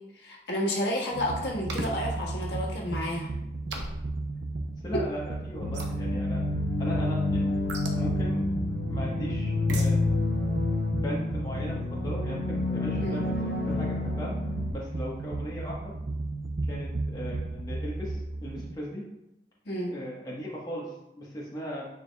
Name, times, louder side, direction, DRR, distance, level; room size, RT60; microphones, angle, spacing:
voice 1, 0.1-3.3 12.9-13.2 19.6-19.9, equal, 75° left, -3 dB, 1.5 m, -31 dB
sound 1, 1.1-18.7, right 2 dB, 55° right, 0.6 m, -34 dB
sound 2, 1.7-1.9 3.7-4.1 5.7-5.9 7.7-8.0 9.7-9.9, right 1 dB, 90° right, 0.9 m, -35 dB
voice 2, 4.8-6.4 6.8-7.5 7.9-8.5 8.9-10.2 11.0-14.3 14.7-15.9 16.7-19.0 19.9-21.9, equal, 20° left, -5 dB, 1.2 m, -38 dB
sound 3, 5.6-14.7, left 2 dB, 50° left, 0.7 m, -29 dB
9.3 x 4.8 x 2.3 m, 0.90 s
head